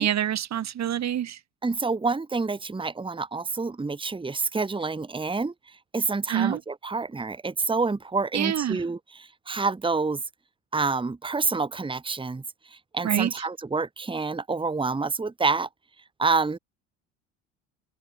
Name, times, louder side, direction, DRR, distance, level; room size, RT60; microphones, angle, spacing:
voice 1, 0.0-1.4 6.3-6.6 8.3-8.8 13.0-13.3, right 10 dB, 40° right, 4.1 m, -26 dB
voice 2, 1.6-5.5 5.9-10.2 10.7-12.4 12.9-15.7 16.2-16.6, right 4 dB, 15° right, 1.9 m, -27 dB
open air
figure-of-eight pair, 60°, 39 cm